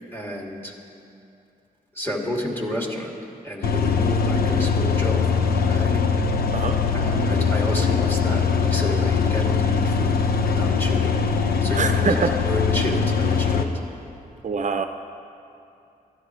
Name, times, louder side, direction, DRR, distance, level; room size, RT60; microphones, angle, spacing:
voice 1, 0.1-0.7 1.9-3.1 3.4-6.0 6.9-11.2 11.6-13.7, left 1 dB, 15° left, -2 dB, 2.7 m, -31 dB
sound 1, 3.6-13.6, left 5 dB, 75° left, 1.0 m, -21 dB
voice 2, 11.7-12.3 14.4-14.8, right 5 dB, 50° right, 7 dB, 0.6 m, -24 dB
22.5 x 14.0 x 3.3 m, 2.6 s
cardioid pair, 85°, 16 cm